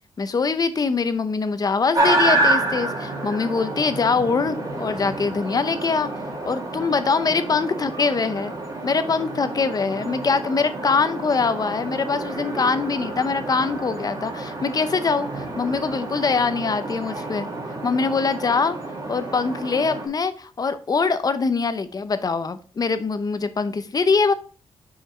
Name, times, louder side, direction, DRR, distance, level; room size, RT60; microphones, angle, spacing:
voice 1, 0.2-6.1 6.4-8.5 8.8-17.5 17.8-18.8 19.1-24.3, left 4 dB, 35° left, 0.6 m, -23 dB
sound 1, 1.9-20.1, right 2 dB, 35° right, 2.2 m, -28 dB
5.8 x 5.4 x 3.2 m
wide cardioid pair, 110°, 11 cm